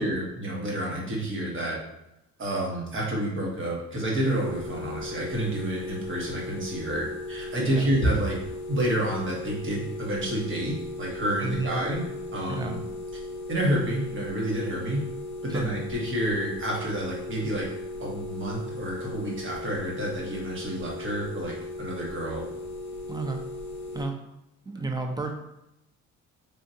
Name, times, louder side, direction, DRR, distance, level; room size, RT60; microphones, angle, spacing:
voice 1, 0.0-1.8 2.4-8.4 8.7-12.0 12.3-12.8 13.5-15.0 15.4-17.6 18.0-22.4, right 1 dB, 40° right, -2 dB, 1.2 m, -29 dB
sound 1, 4.2-24.0, left 2 dB, 70° left, 0.5 m, -37 dB
voice 2, 11.4-11.8 12.5-12.8 15.5-15.7 23.1-23.4 23.9-24.2 24.7-25.3, right 3 dB, 15° right, 4 dB, 0.5 m, -31 dB
3.6 x 2.5 x 2.8 m, 0.89 s
cardioid pair, 90°, 30 cm